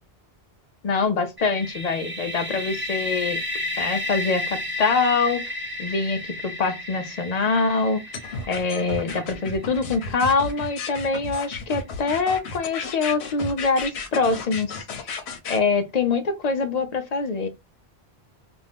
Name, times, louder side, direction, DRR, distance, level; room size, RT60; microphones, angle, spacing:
voice 1, 0.8-3.4 3.8-5.4 5.8-8.0 8.5-15.2 15.5-17.5, left 4 dB, 55° left, 0.5 m, -24 dB
sound 1, 1.4-11.1, left 2 dB, 15° right, 0.7 m, -33 dB
sound 2, 8.1-15.6, left 4 dB, 85° left, 0.9 m, -33 dB
2.6 x 2.3 x 3.3 m
omnidirectional pair, 1.1 m